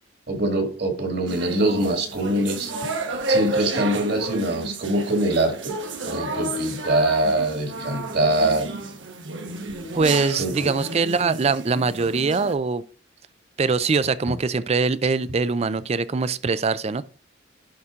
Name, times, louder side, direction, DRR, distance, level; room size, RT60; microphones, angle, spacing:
voice 1, 0.3-2.7 3.3-5.5 6.0-8.7 10.3-10.8, right 1 dB, 60° right, 2.0 m, -23 dB
sound 1, 1.3-12.5, right 2 dB, 75° right, 1.2 m, -31 dB
voice 2, 10.0-12.8 13.6-17.1, right 4 dB, 35° right, 0.4 m, -23 dB
11.0 x 4.3 x 3.6 m
head